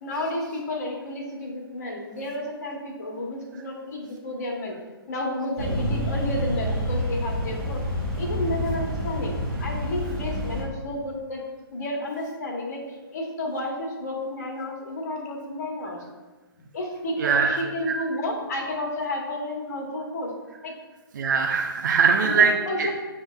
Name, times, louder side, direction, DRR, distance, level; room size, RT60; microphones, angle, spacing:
voice 1, 0.0-4.8 5.1-7.8 8.2-11.4 11.7-12.8 13.1-16.0 16.7-20.3 20.6-20.7 22.2-22.9, left 1 dB, 45° left, 0 dB, 0.9 m, -31 dB
sound 1, 5.6-10.6, left 1 dB, 5° left, 0.8 m, -28 dB
voice 2, 17.2-17.6 17.9-18.0 21.1-22.5 22.8-22.9, right 6 dB, 55° right, 3 dB, 0.4 m, -21 dB
7.2 x 2.8 x 2.3 m, 1.2 s
figure-of-eight pair, 125°, 12 cm